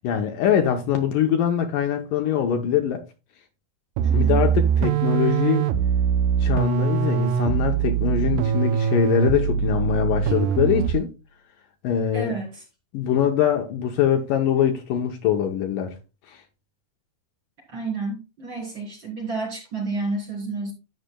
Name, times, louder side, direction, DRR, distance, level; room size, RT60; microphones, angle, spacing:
voice 1, 0.0-3.0 4.1-5.7 6.4-11.1 11.8-12.4 12.9-16.0 16.3-16.4, left 9 dB, 70° left, 2.3 m, -23 dB
voice 2, 4.0-4.4 10.2-10.3 12.1-12.6 17.7-20.7, right 3 dB, 30° right, 3.6 m, -30 dB
sound 1, 4.0-11.1, right 8 dB, 80° right, 2.0 m, -22 dB
11.5 x 7.8 x 2.2 m
omnidirectional pair, 4.3 m